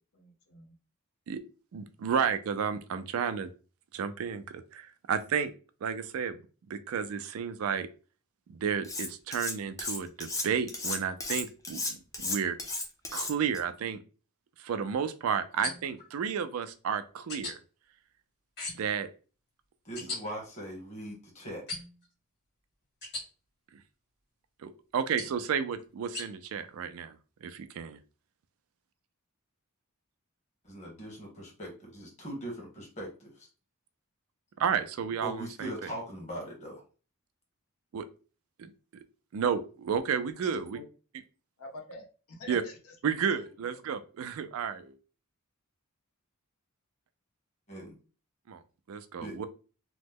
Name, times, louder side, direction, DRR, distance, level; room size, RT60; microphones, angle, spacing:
voice 1, 0.1-0.7 40.7-40.8 41.6-42.9, left 2 dB, 75° left, 1 dB, 0.8 m, -46 dB
voice 2, 1.7-3.5 3.9-5.5 5.8-6.4 6.7-7.9 8.5-12.6 13.1-14.0 14.6-17.6 18.8-19.1 24.6-27.2 27.4-28.0 34.6-35.9 37.9-38.1 38.6-38.7 39.3-40.8 42.5-42.6 43.0-44.9 48.5-48.6 48.9-49.5, right 7 dB, 75° right, 12 dB, 0.4 m, -32 dB
Cutlery silverware, 8.8-9.5 9.8-13.6, left 2 dB, 15° left, 0.5 m, -34 dB
sound 1, 15.6-16.1 17.3-17.5 18.6-19.0 20.0-20.2 21.7-22.1 23.0-23.2 25.2-25.4 26.1-26.3, left 2 dB, 45° left, 1.7 m, -38 dB
voice 3, 19.8-21.6 30.6-33.5 35.2-36.8 47.7-47.9 49.2-49.4, right 1 dB, 30° left, -1 dB, 1.2 m, -40 dB
2.9 x 2.1 x 3.5 m, 0.36 s
head